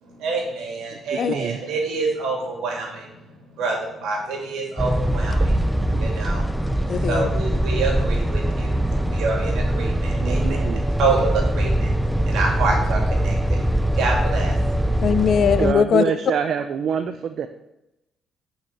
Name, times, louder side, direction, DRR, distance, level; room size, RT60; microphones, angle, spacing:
voice 1, 0.0-3.1 3.5-5.5 6.0-10.6 11.0-14.9, right 3 dB, 85° right, 0 dB, 3.0 m, -27 dB
voice 2, 1.3-1.6 5.8-6.1 10.1-10.8 15.6-17.5, right 7 dB, 65° right, 9 dB, 0.5 m, -26 dB
sound 1, 4.8-15.7, right 1 dB, ahead, 0.6 m, -22 dB
voice 3, 6.9-7.3 15.0-16.0, left 7 dB, 60° left, 13 dB, 0.6 m, -19 dB
7.5 x 5.8 x 7.3 m, 0.92 s
cardioid pair, 90°, 0 cm